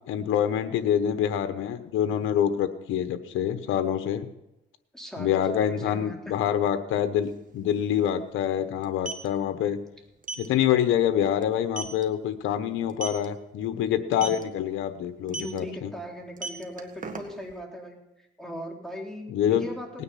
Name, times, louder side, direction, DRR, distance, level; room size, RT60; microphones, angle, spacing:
voice 1, 0.1-4.3 5.2-9.8 10.4-15.9 19.3-19.6, left 10 dB, 85° left, 9 dB, 1.1 m, -26 dB
voice 2, 4.9-6.4 14.2-14.3 15.3-20.0, equal, ahead, -1 dB, 3.9 m, -39 dB
sound 1, 7.2-7.3 7.6-7.8 8.8-9.3 10.2-10.5 10.9-11.1 11.4-11.5 11.8-12.0 12.9-13.3 14.1-14.4 15.3-15.6 16.2-17.5, right 3 dB, 40° right, 1.7 m, -35 dB
18.5 x 9.7 x 5.8 m, 0.88 s
cardioid pair, 90°, 20 cm